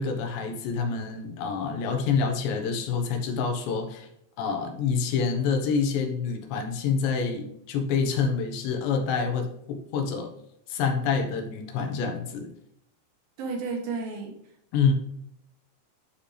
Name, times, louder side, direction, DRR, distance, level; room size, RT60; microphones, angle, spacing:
voice 1, 0.0-4.1 4.4-10.3 10.7-12.5 14.7-14.9, left 5 dB, 90° left, 4 dB, 3.5 m, -27 dB
voice 2, 13.4-14.3, right 4 dB, 65° right, 2 dB, 2.8 m, -32 dB
11.0 x 5.1 x 3.3 m, 0.75 s
omnidirectional pair, 4.9 m